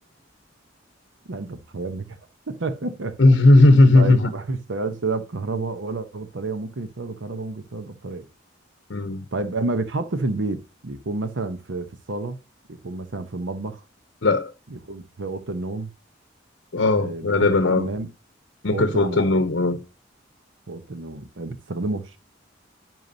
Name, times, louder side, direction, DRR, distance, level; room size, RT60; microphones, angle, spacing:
voice 1, 1.3-2.2 2.5-3.6 3.9-8.2 9.3-12.4 12.7-13.8 14.7-15.9 17.0-18.1 18.7-19.3 20.7-22.2, right 3 dB, 80° right, 0.9 m, -30 dB
voice 2, 3.2-4.3 8.9-9.2 14.2-14.5 16.7-17.9 18.6-19.8, left 2 dB, 70° left, 0.8 m, -17 dB
10.5 x 4.7 x 2.7 m
head